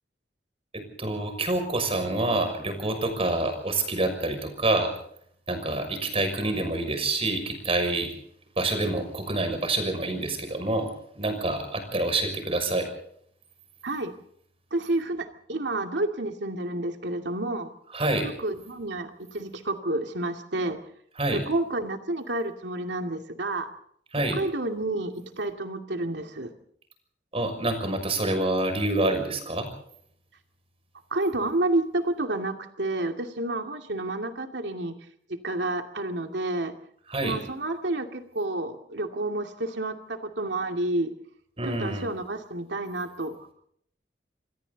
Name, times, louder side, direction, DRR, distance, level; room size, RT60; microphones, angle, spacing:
voice 1, 0.7-4.9 5.5-8.1 8.6-10.9 11.1-12.9 17.9-18.3 21.2-21.4 24.1-24.4 27.3-29.7 37.1-37.4 41.6-42.0, right 2 dB, 35° right, 7 dB, 6.2 m, -27 dB
voice 2, 13.8-14.1 14.7-17.7 18.4-20.8 21.3-23.7 24.3-26.5 31.1-34.9 35.4-36.7 37.2-41.1 41.6-43.4, right 2 dB, 80° right, 5 dB, 2.4 m, -30 dB
27.5 x 24.5 x 4.1 m, 0.66 s
head